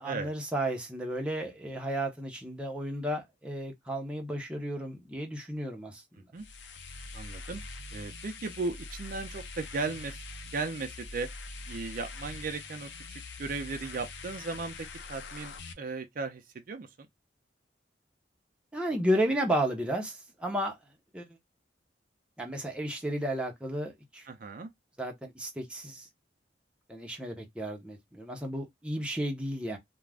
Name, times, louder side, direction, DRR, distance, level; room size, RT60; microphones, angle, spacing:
voice 1, 0.0-6.0 18.7-20.8 21.1-21.2 22.4-24.3 25.0-26.1 26.9-29.8, right 1 dB, 5° right, 0.6 m, -33 dB
sound 1, 6.3-15.7, left 3 dB, 75° left, 0.5 m, -43 dB
voice 2, 7.1-7.6 7.9-10.2 10.5-11.3 11.7-17.1 24.3-24.7, right 3 dB, 50° right, 0.4 m, -36 dB
2.4 x 2.1 x 3.3 m
head